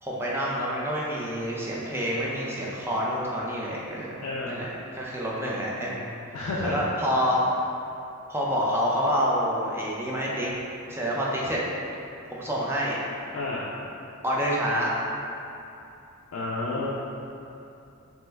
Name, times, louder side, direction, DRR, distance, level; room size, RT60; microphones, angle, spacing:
voice 1, 0.0-4.2 4.5-6.1 6.6-7.4 8.3-10.5 10.9-11.6 12.3-13.0 14.2-14.9, equal, 10° right, -5 dB, 0.3 m, -27 dB
voice 2, 4.2-4.6 6.3-6.8 13.3-13.7 16.3-16.9, left 2 dB, 70° left, -6 dB, 0.3 m, -30 dB
2.9 x 2.2 x 3.3 m, 2.8 s
head